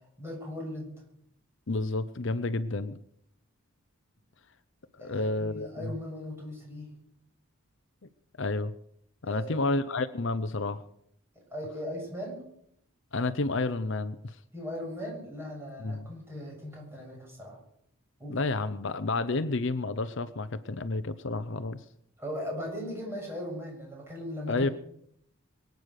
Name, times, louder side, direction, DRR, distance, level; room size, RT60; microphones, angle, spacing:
voice 1, 0.2-0.9 5.0-6.9 9.3-9.6 11.5-12.4 14.5-17.6 18.2-18.4 22.2-24.7, equal, 10° right, -2 dB, 7.0 m, -38 dB
voice 2, 1.7-3.0 5.0-5.9 8.4-8.7 9.2-10.8 13.1-14.4 15.8-16.1 18.3-21.8 24.5-24.7, left 3 dB, 60° left, 12 dB, 0.7 m, -30 dB
23.5 x 9.3 x 6.5 m, 0.71 s
head